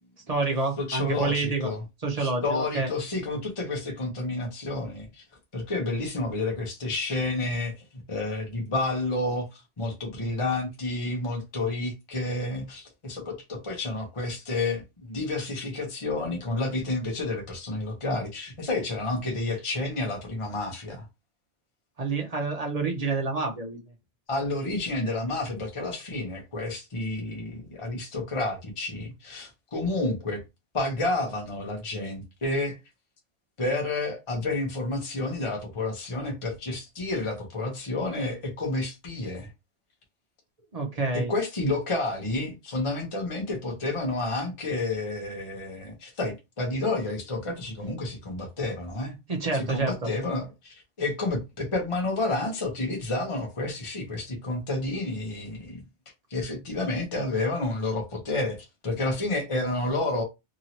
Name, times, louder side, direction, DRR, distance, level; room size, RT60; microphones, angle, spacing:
voice 1, 0.3-1.7 2.0-2.9 22.0-23.8 40.7-41.3 49.3-50.1, right 3 dB, 40° right, 0.7 m, -28 dB
voice 2, 0.8-1.8 2.2-5.2 5.5-21.0 24.3-30.4 30.7-32.8 33.6-39.5 41.1-49.1 49.5-55.8 56.3-60.2, left 2 dB, 30° left, 0.8 m, -30 dB
2.9 x 2.7 x 2.7 m
omnidirectional pair, 1.2 m